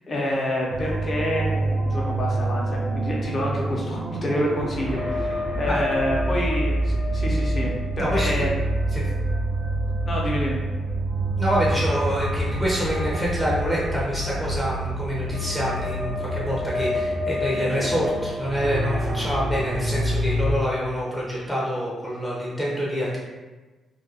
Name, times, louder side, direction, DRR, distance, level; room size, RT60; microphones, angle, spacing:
voice 1, 0.1-8.6 10.0-10.6, equal, 40° left, -3 dB, 0.7 m, -27 dB
sound 1, 0.7-20.5, right 1 dB, 50° right, 0.5 m, -26 dB
voice 2, 8.0-8.5 8.9-9.1 11.4-23.2, equal, 5° left, -6 dB, 0.6 m, -26 dB
2.4 x 2.2 x 2.7 m, 1.2 s
cardioid pair, 90°, 0 cm